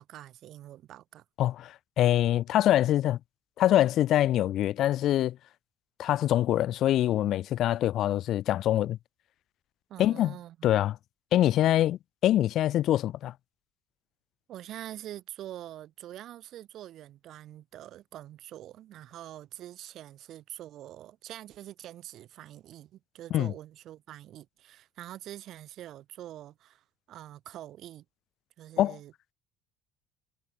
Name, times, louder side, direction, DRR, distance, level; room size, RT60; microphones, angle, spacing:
voice 1, 0.0-1.2 9.9-10.7 14.5-28.0 28.6-29.1, right 12 dB, 60° right, 3.7 m, -45 dB
voice 2, 1.4-3.2 3.6-5.4 6.0-9.0 10.0-10.3 10.6-11.0 11.3-13.3 23.3-23.5 28.8-29.0, left 13 dB, 60° left, 0.7 m, -24 dB
supercardioid pair, 90°, 0 cm